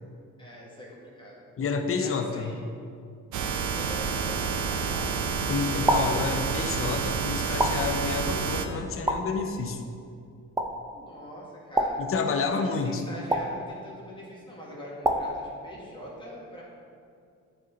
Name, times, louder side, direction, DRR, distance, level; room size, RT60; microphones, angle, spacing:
voice 1, 0.4-1.4 2.0-2.6 3.4-5.2 10.9-12.0 12.4-16.6, equal, 15° left, -6 dB, 1.7 m, -43 dB
voice 2, 1.6-2.5 5.5-9.8 12.0-13.0, left 5 dB, 45° left, 6 dB, 0.8 m, -29 dB
sound 1, 3.3-8.7, right 5 dB, 75° right, 0.6 m, -29 dB
sound 2, 5.9-6.3 7.6-8.0 9.1-9.4 10.6-10.9 11.8-12.2 13.3-13.7 15.0-15.4, right 1 dB, 10° right, 0.5 m, -26 dB
9.2 x 4.4 x 4.0 m, 2.4 s
cardioid pair, 90°, 30 cm